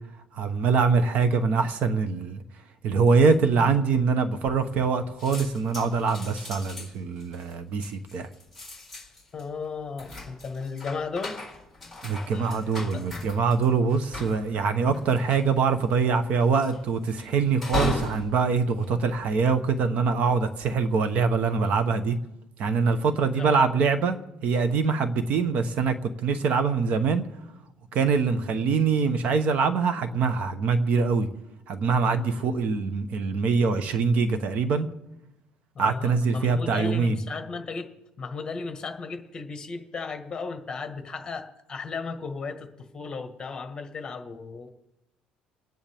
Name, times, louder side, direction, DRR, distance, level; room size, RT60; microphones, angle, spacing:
voice 1, 0.3-2.4 2.8-8.3 12.0-22.2 22.6-24.2 24.4-27.2 27.9-31.3 31.7-34.9 35.8-37.2, right 5 dB, 55° right, 1.1 m, -24 dB
sound 1, 4.4-4.9 5.2-19.7 20.3-20.7, left 3 dB, ahead, 4.0 m, -38 dB
voice 2, 9.3-11.4 12.3-13.0 23.4-23.7 32.2-32.5 35.7-37.9 38.2-44.7, left 4 dB, 25° left, 1.6 m, -35 dB
29.0 x 10.0 x 3.6 m
cardioid pair, 140°, 3 cm